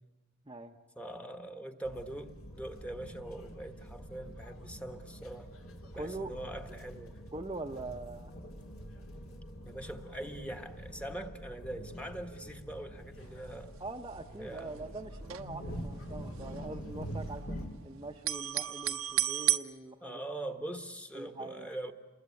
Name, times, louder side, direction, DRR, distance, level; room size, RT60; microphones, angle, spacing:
voice 1, 1.0-5.5 5.9-7.2 9.6-13.7 14.4-14.7 20.0-21.9, right 1 dB, 5° left, 6 dB, 1.2 m, -42 dB
sound 1, 1.8-17.7, equal, 65° left, 3.1 m, -45 dB
voice 2, 5.9-6.3 7.3-8.3 13.8-17.6 17.8-20.2 21.1-21.7, right 2 dB, 20° right, 2 dB, 0.8 m, -43 dB
sound 2, 13.2-13.6 13.9-14.0 14.2-15.8 16.1-17.8 18.1-19.6, right 13 dB, 65° right, 0.8 m, -33 dB
28.5 x 21.0 x 8.4 m, 1.2 s
head